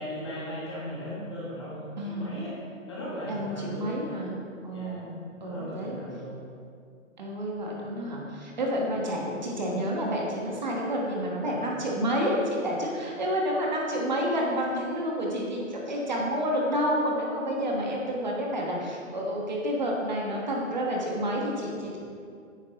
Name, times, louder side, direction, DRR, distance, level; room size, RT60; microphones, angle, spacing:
voice 1, 0.0-2.6 2.9-3.9 4.7-5.0 5.4-6.4, equal, 20° left, -7 dB, 1.6 m, -37 dB
voice 2, 2.0-2.4 3.3-4.4 4.6-6.0 7.2-22.0, equal, 35° right, -2 dB, 1.3 m, -29 dB
10.5 x 9.3 x 3.0 m, 2.3 s
hypercardioid pair, 180°, 40 cm